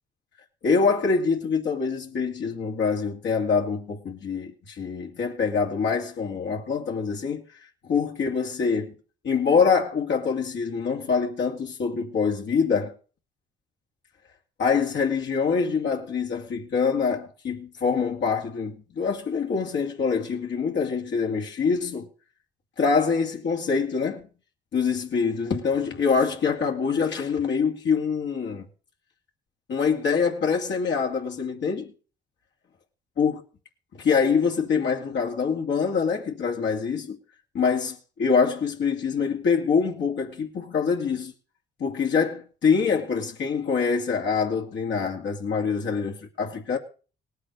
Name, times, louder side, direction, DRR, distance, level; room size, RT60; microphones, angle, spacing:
voice 1, 0.6-8.9 9.2-12.9 14.6-22.1 22.8-24.3 24.7-28.7 29.7-31.9 33.2-33.3 34.0-37.2 37.5-41.3 41.8-46.8, left 5 dB, 65° left, 2.5 m, -25 dB
18.5 x 8.3 x 6.5 m
cardioid pair, 90°, 20 cm